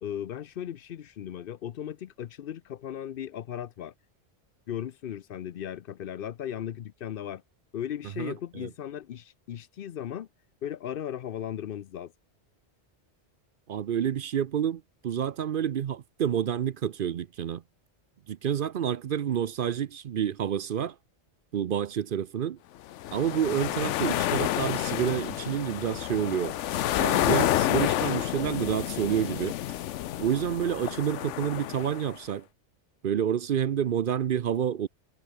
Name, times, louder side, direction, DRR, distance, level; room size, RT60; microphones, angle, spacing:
voice 1, 0.0-3.9 4.7-7.4 7.7-10.3 10.6-12.1, left 10 dB, 60° left, 0.7 m, -36 dB
voice 2, 8.2-8.7 13.7-17.6 18.3-20.9 21.5-22.6 23.1-26.6 27.0-29.6 30.2-32.5 33.0-34.9, right 9 dB, 55° right, 0.7 m, -29 dB
sound 1, 22.9-32.2, left 13 dB, 90° left, 0.9 m, -29 dB
sound 2, 26.8-27.0 27.3-27.4 27.8-28.0 28.4-28.8 29.2-29.9 30.2-30.3, right 1 dB, 30° right, 6.7 m, -53 dB
omnidirectional pair, 1.2 m